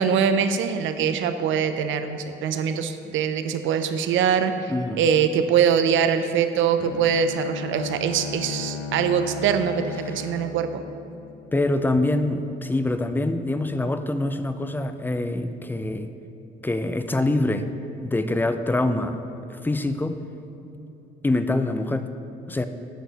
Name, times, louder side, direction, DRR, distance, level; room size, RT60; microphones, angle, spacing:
voice 1, 0.0-10.8, right 7 dB, 75° right, 9 dB, 0.5 m, -23 dB
voice 2, 4.7-5.0 11.5-16.1 16.6-17.7 18.0-19.2 19.5-20.2 21.2-22.1 22.5-22.6, left 2 dB, 10° left, 9 dB, 0.4 m, -25 dB
Bowed string instrument, 6.8-11.7, left 4 dB, 60° left, 0.5 m, -35 dB
8.2 x 6.0 x 4.0 m, 2.9 s
cardioid pair, 90°, 20 cm